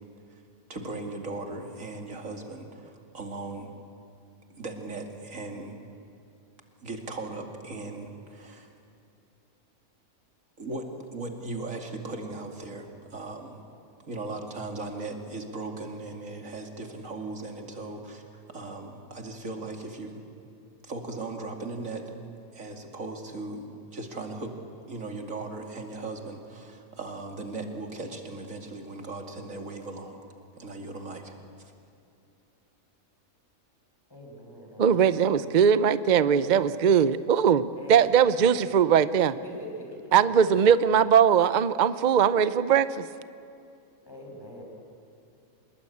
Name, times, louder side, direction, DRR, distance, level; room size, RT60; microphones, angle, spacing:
voice 1, 0.7-3.7 4.6-5.8 6.8-8.7 10.6-10.9 11.1-13.6 14.1-20.2 20.8-22.2 22.5-24.5 24.9-30.2 30.6-31.3, right 2 dB, 65° right, 3 dB, 2.8 m, -38 dB
voice 2, 34.1-35.0 36.2-36.7 37.7-38.5 39.4-40.5 44.1-44.6, equal, 15° left, -1 dB, 5.9 m, -43 dB
voice 3, 34.8-39.4 40.1-43.1, right 8 dB, 45° right, 14 dB, 0.6 m, -21 dB
25.5 x 21.5 x 8.6 m, 2.6 s
omnidirectional pair, 1.5 m